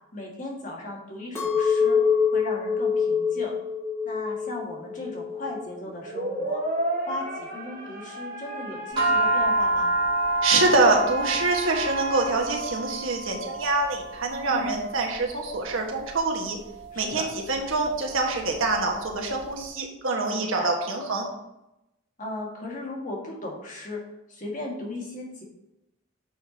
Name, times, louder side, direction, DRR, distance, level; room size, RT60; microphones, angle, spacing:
voice 1, 0.1-2.0 2.3-3.5 4.0-6.6 7.1-9.9 14.5-14.8 16.9-17.3 20.3-20.7 22.2-25.4, left 2 dB, 40° left, -2 dB, 1.9 m, -36 dB
Chink clink, 1.4-5.7 6.1-6.7, left 6 dB, 15° left, 1.4 m, -25 dB
sound 1, 5.8-12.3, right 1 dB, 45° right, 1.9 m, -33 dB
sound 2, 9.0-19.4, right 2 dB, 25° right, 2.6 m, -29 dB
voice 2, 10.4-16.6 16.9-21.2, right 3 dB, 90° right, 0 dB, 1.5 m, -25 dB
9.3 x 6.1 x 2.9 m, 0.89 s
head